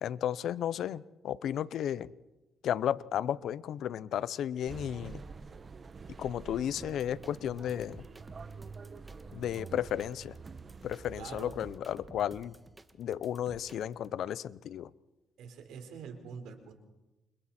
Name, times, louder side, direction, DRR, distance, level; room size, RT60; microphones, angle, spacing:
voice 1, 0.0-2.1 2.6-5.2 6.2-8.1 9.3-10.4 10.8-12.6 13.0-14.9, left 10 dB, 70° left, 0.8 m, -33 dB
sound 1, 4.7-11.8, right 5 dB, 40° right, 1.2 m, -47 dB
sound 2, 6.8-14.1, right 2 dB, 15° right, 1.9 m, -54 dB
voice 2, 11.2-11.6 15.4-16.7, right 6 dB, 85° right, 4.4 m, -45 dB
29.5 x 26.5 x 4.4 m
cardioid pair, 90°, 0 cm